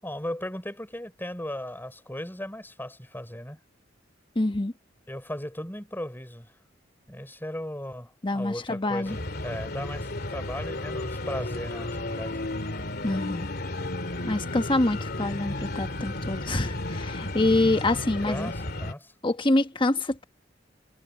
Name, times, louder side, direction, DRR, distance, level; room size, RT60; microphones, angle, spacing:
voice 1, 0.0-3.6 5.1-6.5 7.1-9.2 9.4-12.4 18.2-19.1, left 1 dB, 10° left, 4.7 m, -36 dB
voice 2, 4.3-4.7 8.2-9.2 13.0-13.5 14.2-18.5 19.2-20.2, left 2 dB, 25° left, 1.2 m, -26 dB
sound 1, 9.0-18.9, left 2 dB, 55° left, 2.6 m, -33 dB
head